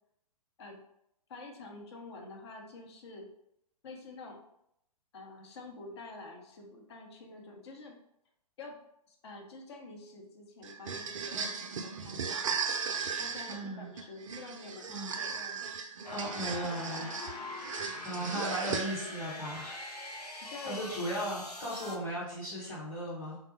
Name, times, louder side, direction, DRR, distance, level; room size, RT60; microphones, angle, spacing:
voice 1, 1.3-3.3 3.8-4.4 5.1-8.0 8.6-8.8 9.1-12.5 13.2-15.7 20.5-20.8, left 3 dB, 45° left, 1 dB, 0.9 m, -47 dB
sound 1, 10.6-19.3, right 5 dB, 55° right, 0.4 m, -37 dB
voice 2, 13.5-13.9 14.9-15.1 16.1-17.1 18.0-19.8 20.2-23.4, equal, 10° left, -7 dB, 1.2 m, -37 dB
sound 2, 16.0-22.0, left 1 dB, 85° left, 0.8 m, -43 dB
3.6 x 2.3 x 4.4 m, 0.76 s
figure-of-eight pair, 120°, 20 cm